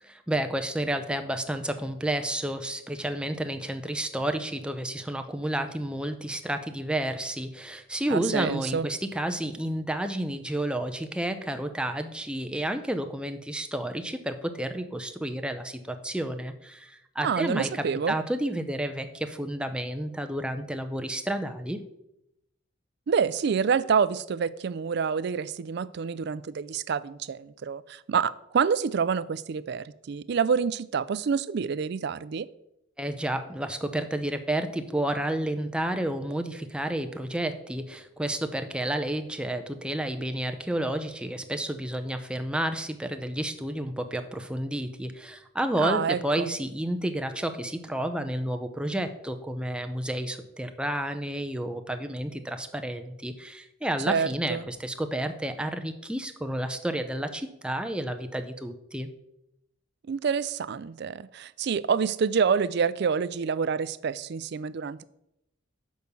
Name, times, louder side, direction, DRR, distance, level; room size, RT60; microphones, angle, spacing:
voice 1, 0.0-21.8 33.0-59.1, right 1 dB, 5° right, 7 dB, 0.6 m, -31 dB
voice 2, 8.1-8.9 17.2-18.1 23.1-32.5 45.8-46.5 54.1-54.6 60.1-65.0, right 6 dB, 55° right, 16 dB, 0.4 m, -27 dB
6.4 x 5.2 x 6.9 m, 0.82 s
head